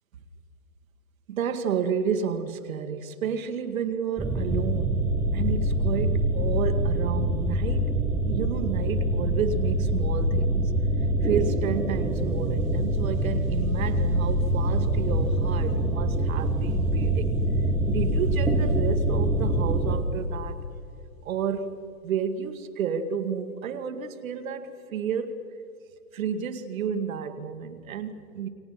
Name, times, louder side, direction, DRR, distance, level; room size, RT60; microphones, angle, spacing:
voice 1, 1.3-5.0 5.3-7.9 8.3-10.7 11.2-17.3 17.9-20.6 21.3-21.7 22.0-25.4 26.1-28.5, right 7 dB, 55° right, 8 dB, 2.0 m, -31 dB
sound 1, 4.2-20.0, right 1 dB, 5° right, 0.9 m, -25 dB
28.5 x 24.5 x 5.8 m, 2.5 s
hypercardioid pair, 145°, 49 cm